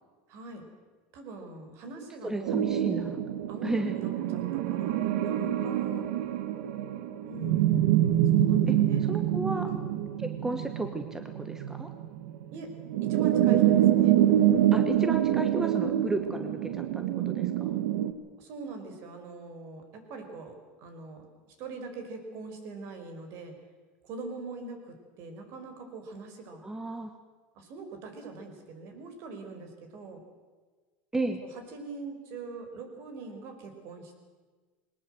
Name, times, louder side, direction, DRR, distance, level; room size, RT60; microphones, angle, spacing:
voice 1, 0.3-0.6 1.1-2.6 3.5-6.1 7.2-9.1 9.6-9.8 12.5-12.7 13.0-14.2 18.4-21.3 21.6-23.5 24.0-26.7 27.5-30.2 31.7-34.2, right 3 dB, 55° right, 5 dB, 5.0 m, -43 dB
voice 2, 2.2-3.2 3.6-3.9 8.7-9.7 10.2-11.9 14.7-17.0 17.3-17.8 26.6-27.1 31.1-31.4, right 2 dB, 10° right, 7 dB, 1.3 m, -33 dB
sound 1, 2.5-18.1, right 11 dB, 80° right, 1.6 m, -26 dB
21.0 x 19.0 x 7.9 m, 1.4 s
supercardioid pair, 130°, 5 cm